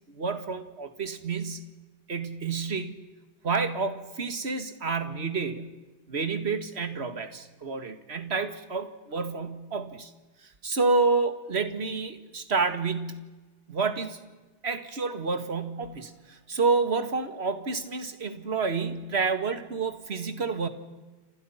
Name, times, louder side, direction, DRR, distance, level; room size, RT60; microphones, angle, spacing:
voice 1, 0.1-1.6 2.1-3.0 3.4-5.8 6.1-10.1 10.4-13.3 13.7-14.2 14.6-20.7, right 4 dB, 35° right, 10 dB, 2.0 m, -29 dB
29.5 x 27.0 x 5.8 m, 1.2 s
omnidirectional pair, 2.1 m